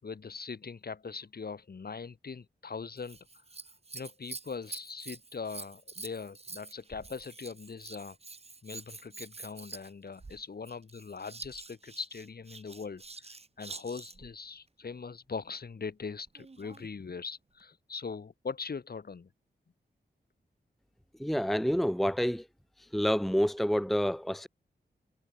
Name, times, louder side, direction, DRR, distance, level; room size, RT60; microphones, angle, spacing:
voice 1, 0.0-3.2 3.9-8.2 8.6-19.3, left 5 dB, 65° left, 6.5 m, -41 dB
Scissors, 3.0-14.3 16.3-16.9 17.6-17.7, right 3 dB, 35° right, 1.8 m, -47 dB
voice 2, 21.2-22.4 22.9-24.5, equal, ahead, 0.9 m, -28 dB
wide cardioid pair, 75°, 17 cm